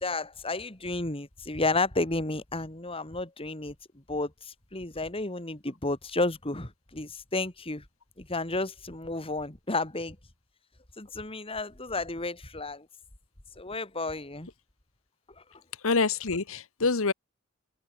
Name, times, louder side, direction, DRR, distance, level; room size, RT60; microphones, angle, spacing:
voice 1, 0.0-3.7 4.1-7.8 8.2-10.2 11.0-12.9 13.6-14.5, left 2 dB, 25° left, 2.6 m, -32 dB
voice 2, 15.8-17.1, left 4 dB, 70° left, 1.2 m, -26 dB
open air
head